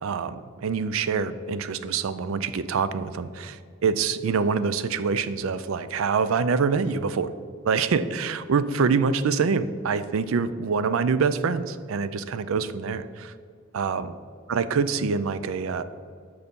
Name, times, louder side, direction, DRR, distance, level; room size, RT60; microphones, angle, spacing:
voice 1, 0.0-7.3 7.6-13.3 13.7-14.1 14.5-15.8, right 5 dB, 70° right, 14 dB, 0.4 m, -25 dB
6.6 x 5.6 x 5.3 m, 2.2 s
head